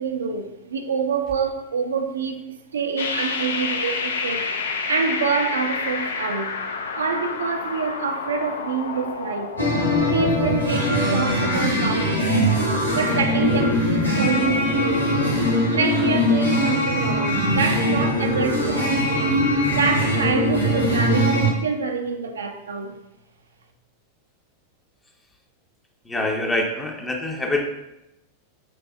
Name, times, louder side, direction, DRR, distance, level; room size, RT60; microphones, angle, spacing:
voice 1, 0.0-2.4 2.7-4.5 4.9-6.6 6.9-9.6 10.0-12.6 12.9-15.4 15.7-19.4 19.7-23.0, right 5 dB, 70° right, 0.4 m, -26 dB
sound 1, 3.0-10.5, left 5 dB, 65° left, 0.4 m, -29 dB
sound 2, 9.6-21.5, equal, 85° left, 0.9 m, -21 dB
voice 2, 26.1-27.6, left 2 dB, 10° left, 0.6 m, -25 dB
5.1 x 3.3 x 2.3 m
figure-of-eight pair, 90°, 0 cm